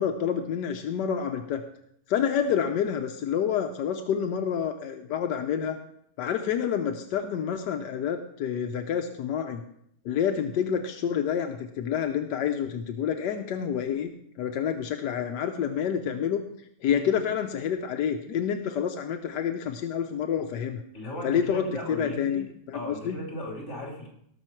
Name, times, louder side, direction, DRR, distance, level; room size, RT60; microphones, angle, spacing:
voice 1, 0.0-1.6 2.1-5.8 6.2-9.6 10.0-14.1 14.4-16.4 16.8-20.8 21.2-23.2, left 8 dB, 85° left, 6 dB, 1.4 m, -28 dB
voice 2, 20.9-22.4 22.7-24.1, left 1 dB, 40° left, -1 dB, 3.4 m, -36 dB
18.5 x 6.3 x 4.4 m, 0.72 s
omnidirectional pair, 1.8 m